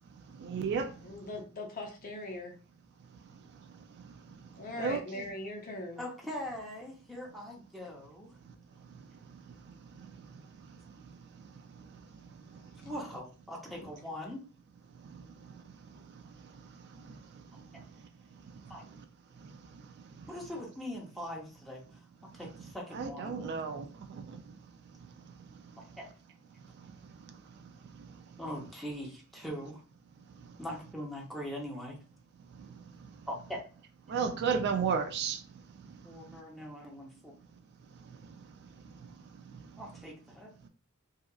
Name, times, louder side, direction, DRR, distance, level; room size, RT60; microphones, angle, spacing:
voice 1, 0.4-0.9 4.8-5.3 22.9-23.9 24.2-24.4 34.1-35.4, right 6 dB, 50° right, 0.3 m, -32 dB
voice 2, 1.0-2.5 4.6-6.0, left 2 dB, 40° left, 0.6 m, -40 dB
voice 3, 6.0-8.3 12.8-14.4 18.7-18.8 20.2-21.8 22.3-23.4 26.0-26.1 28.4-29.8 30.6-32.0 33.3-33.6 36.0-37.3 39.8-40.5, equal, ahead, 0.7 m, -41 dB
2.7 x 2.3 x 2.3 m
head